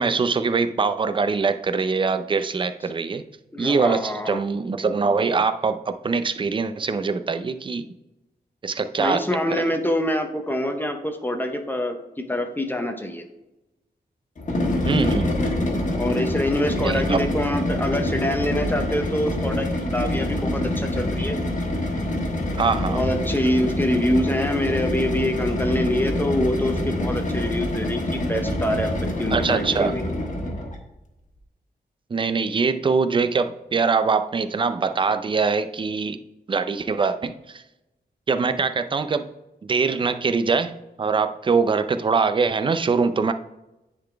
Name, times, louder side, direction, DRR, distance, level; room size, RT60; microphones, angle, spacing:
voice 1, 0.0-3.2 3.6-7.8 8.6-9.3 9.6-9.7 14.9-15.3 16.8-17.2 22.6-23.0 29.3-29.9 32.1-36.2 36.5-37.6 38.3-39.3 39.6-40.7 41.0-43.3, right 4 dB, 30° right, 11 dB, 0.4 m, -23 dB
voice 2, 3.5-4.4 9.0-13.2 15.9-21.3 22.9-28.9 29.2-30.0, left 1 dB, 10° left, 5 dB, 0.7 m, -25 dB
sound 1, 14.4-30.8, left 1 dB, 45° left, 1.3 m, -26 dB
10.0 x 3.9 x 3.4 m, 0.95 s
wide cardioid pair, 140°, 17 cm